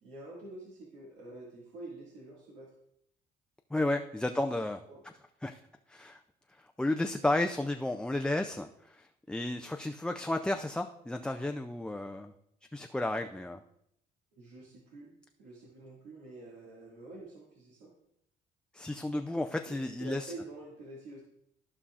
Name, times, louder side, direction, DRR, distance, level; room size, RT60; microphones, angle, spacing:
voice 1, 0.0-2.7 4.3-4.4 4.9-5.0 14.3-15.1 15.4-17.9 19.6-21.2, right 2 dB, 90° right, -5 dB, 2.1 m, -47 dB
voice 2, 3.7-4.8 5.4-5.6 5.9-6.2 6.8-12.3 12.7-13.6 18.7-20.3, left 1 dB, 5° left, 4 dB, 0.4 m, -32 dB
14.0 x 5.5 x 2.4 m, 0.76 s
cardioid pair, 110°, 17 cm